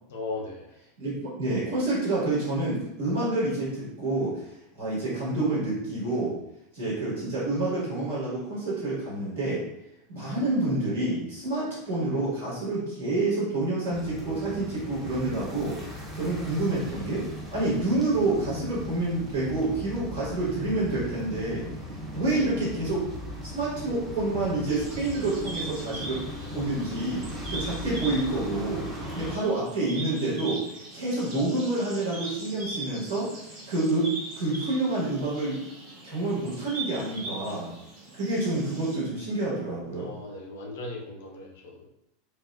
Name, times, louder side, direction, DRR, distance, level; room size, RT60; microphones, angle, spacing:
voice 1, 0.1-0.7 16.1-16.2 39.9-41.9, left 2 dB, 65° left, 0 dB, 0.5 m, -37 dB
voice 2, 1.0-4.4 4.8-6.3 6.7-9.6 10.1-21.7 22.1-23.1 23.4-26.2 26.5-28.8 29.1-34.1 34.4-35.6 36.0-37.7 38.1-40.1, right 2 dB, 70° right, -8 dB, 1.4 m, -28 dB
sound 1, 13.9-29.4, equal, 10° right, 0.7 m, -38 dB
sound 2, 24.7-38.9, right 2 dB, 50° right, 0.8 m, -41 dB
2.3 x 2.3 x 2.4 m, 0.82 s
figure-of-eight pair, 85°, 0 cm